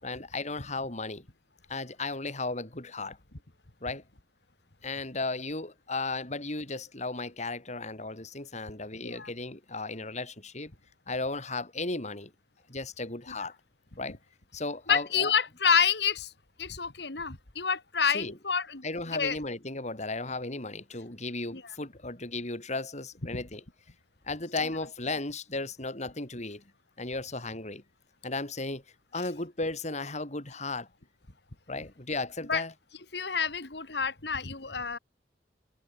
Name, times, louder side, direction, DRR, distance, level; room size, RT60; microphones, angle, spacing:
voice 1, 0.0-1.2 1.7-3.2 3.8-4.0 4.8-10.7 11.1-12.3 12.7-13.6 14.0-14.2 14.5-15.3 18.1-18.4 18.8-23.6 24.3-26.6 27.0-27.8 28.2-28.8 29.1-30.9 31.7-32.7, left 3 dB, 40° left, 4.4 m, -35 dB
voice 2, 14.9-16.3 16.6-18.8 19.1-19.4 21.5-21.6 23.3-23.4 32.5-32.6 33.1-35.0, left 6 dB, 65° left, 2.3 m, -28 dB
head